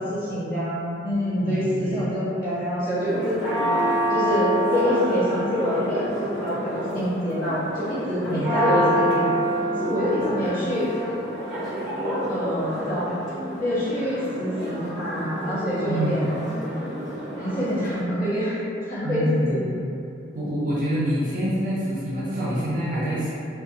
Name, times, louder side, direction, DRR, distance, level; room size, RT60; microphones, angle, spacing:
voice 1, 0.0-3.7 4.1-6.1 6.4-9.2 9.7-10.9 12.3-13.1 13.6-16.3 17.3-18.6 18.9-19.6, equal, 45° left, -12 dB, 1.0 m, -26 dB
voice 2, 1.4-2.2 8.3-8.9 15.9-16.4 19.0-19.7 20.3-23.3, equal, 45° right, -8 dB, 0.5 m, -26 dB
Church bell, 3.0-18.0, right 1 dB, 5° right, 1.0 m, -28 dB
2.5 x 2.2 x 2.6 m, 2.7 s
head